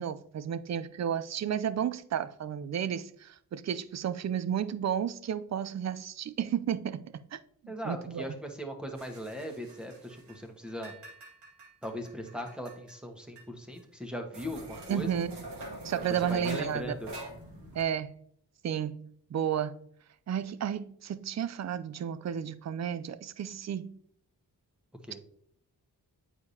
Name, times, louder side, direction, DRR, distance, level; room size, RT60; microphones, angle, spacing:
voice 1, 0.0-7.4 7.6-8.4 14.9-15.3 15.8-16.9 17.7-18.2 18.6-19.8 20.3-24.0, right 9 dB, 45° right, 0.4 m, -32 dB
voice 2, 7.7-10.9 11.8-15.2 16.3-17.1 17.5-17.7 25.0-25.2, equal, ahead, 1.3 m, -39 dB
sound 1, 9.0-10.4 10.7-12.9 13.4-13.5 13.8-13.9 14.3-17.8, equal, 90° right, 1.8 m, -44 dB
8.6 x 4.8 x 2.8 m
cardioid pair, 60°, 40 cm